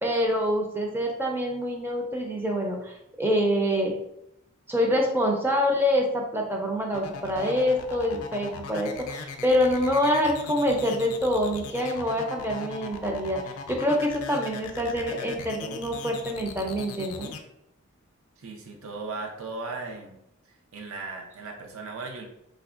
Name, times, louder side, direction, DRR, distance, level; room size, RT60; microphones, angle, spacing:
voice 1, 0.0-3.9 4.7-13.4 13.7-17.3, equal, 10° right, 0 dB, 0.4 m, -26 dB
sound 1, 6.9-17.4, left 5 dB, 85° left, 0.4 m, -39 dB
voice 2, 18.4-20.2 20.5-22.2, right 3 dB, 75° right, 1 dB, 0.5 m, -37 dB
3.4 x 2.1 x 2.4 m, 0.80 s
head